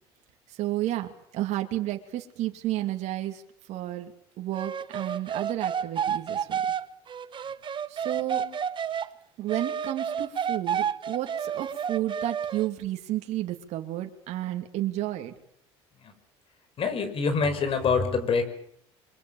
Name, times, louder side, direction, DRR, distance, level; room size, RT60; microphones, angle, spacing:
voice 1, 0.5-3.4 3.7-4.1 4.4-6.6 7.9-8.4 9.4-15.3, right 14 dB, 60° right, 4 dB, 2.8 m, -31 dB
sound 1, 4.5-9.1 9.5-12.7, right 8 dB, 40° right, 1.2 m, -30 dB
voice 2, 16.8-18.4, left 5 dB, 45° left, 10 dB, 5.8 m, -26 dB
27.0 x 24.0 x 7.2 m, 0.68 s
supercardioid pair, 90°, 13 cm